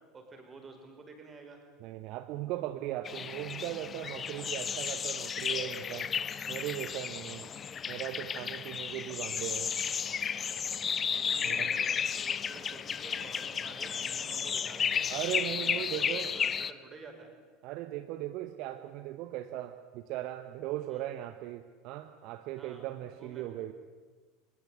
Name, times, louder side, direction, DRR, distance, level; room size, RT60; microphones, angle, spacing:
voice 1, 0.1-1.6 7.4-7.7 11.1-15.1 15.6-17.3 20.9-21.1 22.6-23.5, right 3 dB, 25° right, 4 dB, 5.9 m, -51 dB
voice 2, 1.8-6.1 6.5-7.5 7.9-9.7 11.4-11.7 15.1-16.3 17.6-23.7, right 14 dB, 50° right, 10 dB, 1.1 m, -38 dB
sound 1, 3.0-16.7, left 7 dB, 30° left, 0.9 m, -33 dB
24.0 x 21.5 x 8.3 m, 1.4 s
figure-of-eight pair, 75°, 0 cm